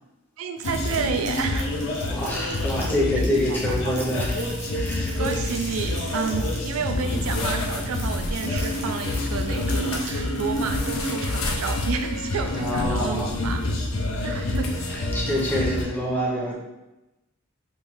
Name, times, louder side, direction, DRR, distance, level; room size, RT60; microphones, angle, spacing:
voice 1, 0.4-1.7 3.5-3.9 5.2-13.7 14.2-14.7, right 6 dB, 85° right, 6 dB, 0.4 m, -30 dB
sound 1, 0.6-15.9, left 2 dB, 80° left, 0.6 m, -27 dB
sound 2, 0.6-12.3, right 2 dB, 35° right, 0.6 m, -42 dB
voice 2, 2.1-4.4 4.7-5.2 12.5-13.4 14.2-14.6 14.9-16.5, left 1 dB, 10° left, -4 dB, 0.7 m, -27 dB
3.1 x 2.6 x 3.5 m, 1.0 s
head